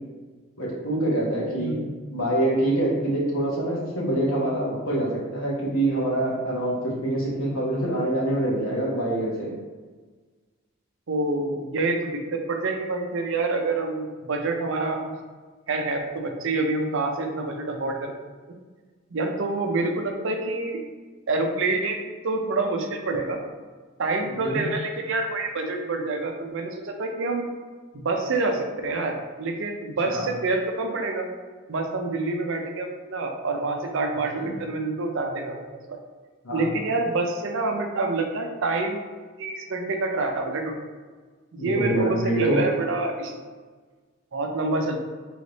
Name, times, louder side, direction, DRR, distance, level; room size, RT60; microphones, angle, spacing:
voice 1, 0.6-1.8 2.1-9.5 24.2-24.6 30.0-30.3 34.3-34.6 36.4-36.7 41.6-42.6, right 1 dB, 70° left, -4 dB, 1.2 m, -25 dB
voice 2, 1.6-1.9 11.1-15.1 15.7-18.1 19.1-20.8 21.3-23.4 24.0-27.5 27.9-31.3 31.7-36.0 36.5-39.0 39.4-40.8 41.5-43.4 44.3-45.0, right 3 dB, 60° right, 3 dB, 0.5 m, -27 dB
3.3 x 3.1 x 3.9 m, 1.4 s
head